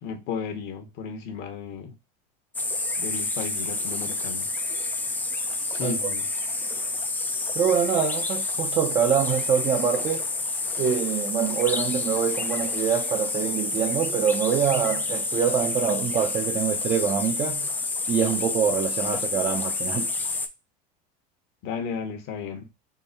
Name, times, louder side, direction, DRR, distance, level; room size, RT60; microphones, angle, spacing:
voice 1, 0.0-1.9 3.0-4.5 5.7-6.3 21.6-22.7, left 6 dB, 60° left, 1.1 m, -34 dB
sound 1, 2.5-20.5, left 3 dB, 10° left, 0.4 m, -29 dB
voice 2, 7.6-10.3 10.8-17.7 18.1-20.1, right 8 dB, 30° right, 0.6 m, -25 dB
3.8 x 2.1 x 3.9 m
supercardioid pair, 115°, 21 cm